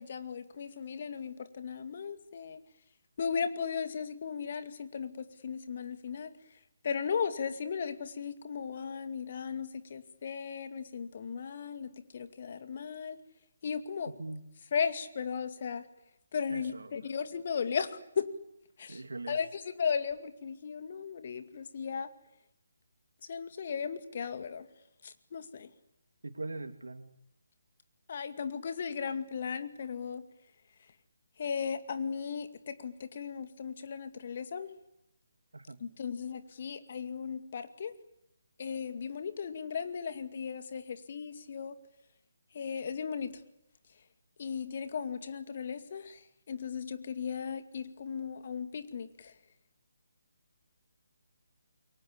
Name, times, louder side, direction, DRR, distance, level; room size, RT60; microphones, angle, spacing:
voice 1, 0.0-2.6 3.2-6.3 6.8-13.2 13.6-14.1 14.7-15.9 16.3-18.3 18.8-19.0 19.3-22.1 23.2-24.7 25.0-25.7 28.1-30.3 31.4-34.7 35.8-37.9 38.6-41.8 42.5-43.4 44.4-49.3, left 6 dB, 45° left, 10 dB, 2.2 m, -36 dB
voice 2, 16.5-17.1 18.9-19.4 26.2-27.1 35.5-35.8, right 2 dB, 65° right, 8 dB, 3.1 m, -41 dB
28.5 x 23.5 x 8.6 m, 0.81 s
figure-of-eight pair, 145°, 0 cm